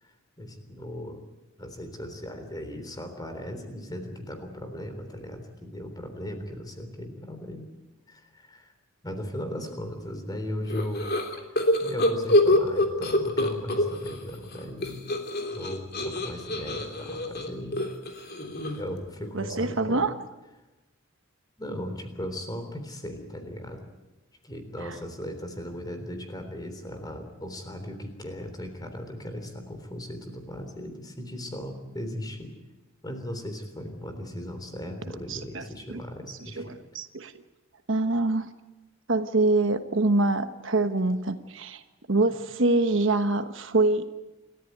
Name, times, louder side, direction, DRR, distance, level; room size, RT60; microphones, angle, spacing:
voice 1, 0.0-1.2 1.6-7.6 8.1-8.7 9.0-11.1 11.5-15.0 15.5-17.8 18.8-20.1 21.6-23.9 24.4-32.5 33.0-36.8, equal, 20° left, 6 dB, 3.7 m, -37 dB
sound 1, 10.7-14.2 14.5-19.0, left 1 dB, 50° left, 3.2 m, -26 dB
voice 2, 19.3-20.2 35.3-36.0 36.6-36.7 36.9-37.3 37.9-38.5 39.1-41.8 42.1-44.1, right 2 dB, 65° right, 9 dB, 1.2 m, -25 dB
28.5 x 14.0 x 9.4 m, 1.1 s
head